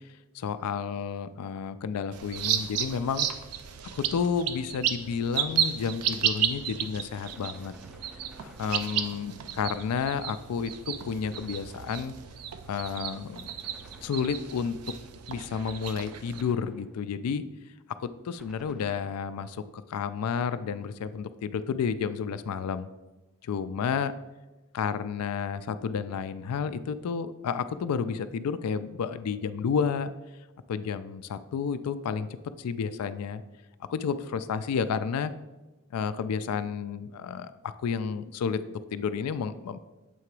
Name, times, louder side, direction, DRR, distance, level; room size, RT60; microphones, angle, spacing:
voice 1, 0.3-3.3 3.9-7.7 8.4-12.1 12.7-13.5 14.0-14.8 15.3-17.4 18.0-19.6 19.9-22.9 23.4-24.1 24.7-30.1 30.7-32.3 32.6-33.4 33.9-35.3 35.9-39.8, left 6 dB, 85° left, 12 dB, 0.3 m, -31 dB
sound 1, 2.1-16.4, right 9 dB, 85° right, 0.5 m, -33 dB
Gunshot gunfire, 7.1-9.6 11.2-12.3 13.6-15.1 16.4-17.2 18.4-19.5, equal, 5° right, 0.4 m, -54 dB
7.6 x 2.9 x 4.6 m, 1.1 s
head